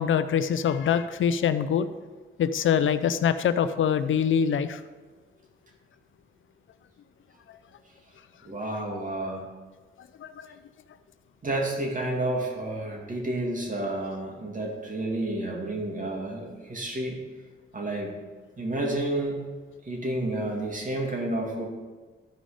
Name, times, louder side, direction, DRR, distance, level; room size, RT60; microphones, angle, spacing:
voice 1, 0.0-1.9 2.4-4.8 10.2-10.5, left 8 dB, 70° left, 12 dB, 0.5 m, -24 dB
voice 2, 8.4-9.5 11.4-17.2 17.7-18.1 18.6-19.4 19.8-21.6, right 1 dB, 40° right, 0 dB, 2.4 m, -30 dB
12.5 x 5.1 x 5.0 m, 1.3 s
cardioid pair, 65°, 21 cm